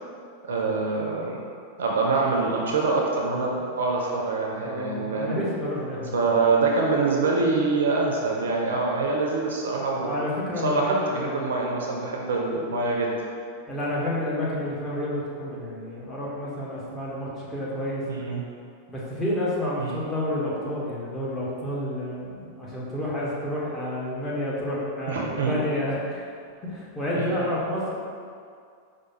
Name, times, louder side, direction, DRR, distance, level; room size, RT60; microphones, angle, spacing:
voice 1, 0.5-1.4 1.8-5.5 6.1-10.1 10.6-13.1 18.1-18.4 19.8-19.9 25.1-25.5 27.1-27.3, right 3 dB, 65° right, -1 dB, 0.4 m, -25 dB
voice 2, 4.6-6.1 10.0-11.7 13.7-18.0 18.9-26.3 26.6-27.9, left 1 dB, 10° left, -7 dB, 0.9 m, -30 dB
4.6 x 2.2 x 3.0 m, 2.3 s
figure-of-eight pair, 90°, 0 cm